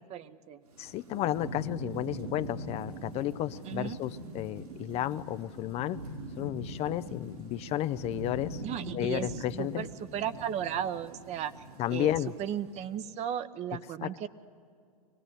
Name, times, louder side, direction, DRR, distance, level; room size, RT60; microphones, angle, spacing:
voice 1, 0.0-0.6 3.6-4.0 8.6-11.6 11.9-14.3, right 9 dB, 35° right, 12 dB, 0.9 m, -35 dB
Thunderstorm / Rain, 0.7-12.9, right 1 dB, 80° right, 4.9 m, -42 dB
voice 2, 0.8-6.0 6.4-8.6 8.9-9.8 11.8-12.3 14.0-14.3, left 13 dB, 35° left, 13 dB, 0.5 m, -32 dB
23.5 x 18.0 x 9.6 m, 2.3 s
hypercardioid pair, 105°, 19 cm